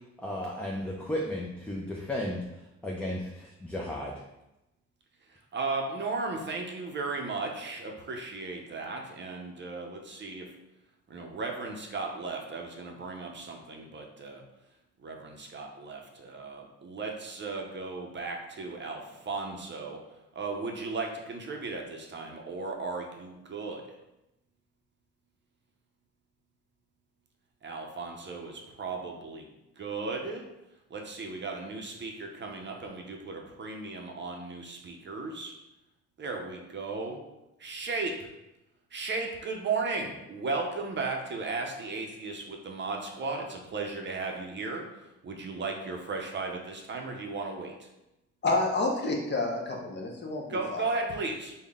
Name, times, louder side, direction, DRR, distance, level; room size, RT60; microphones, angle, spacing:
voice 1, 0.2-2.4 2.8-4.2, left 1 dB, 5° left, -3 dB, 0.4 m, -34 dB
voice 2, 5.3-10.5 11.1-14.4 15.0-20.0 20.3-23.8 27.6-29.4 29.8-30.4 30.9-35.5 36.2-37.2 37.6-38.3 38.9-44.8 45.2-47.7 50.5-51.5, right 3 dB, 40° right, 2 dB, 0.6 m, -35 dB
voice 3, 48.4-50.9, left 2 dB, 35° left, 0 dB, 0.7 m, -29 dB
3.7 x 2.2 x 3.5 m, 0.94 s
cardioid pair, 90°, 30 cm